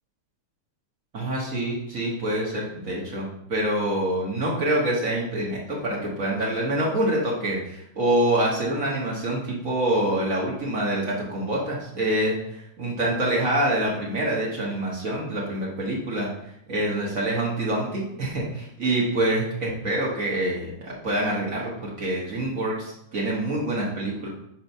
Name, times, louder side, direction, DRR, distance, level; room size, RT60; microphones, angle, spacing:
voice 1, 1.1-16.3 16.7-24.3, right 1 dB, 55° right, -4 dB, 0.9 m, -26 dB
4.6 x 4.5 x 5.4 m, 0.76 s
omnidirectional pair, 3.3 m